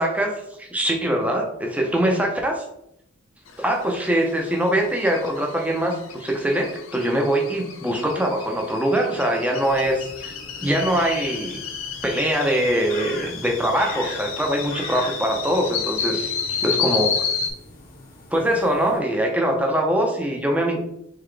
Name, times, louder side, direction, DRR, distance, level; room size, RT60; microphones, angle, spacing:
voice 1, 0.0-2.6 3.6-10.3 10.6-11.6 12.0-17.3 18.3-20.8, right 1 dB, 5° right, 1 dB, 0.6 m, -23 dB
sound 1, 3.5-17.5, left 6 dB, 80° left, 0.7 m, -31 dB
sound 2, 9.6-19.0, left 2 dB, 45° left, 1.0 m, -41 dB
3.8 x 3.7 x 3.3 m, 0.77 s
head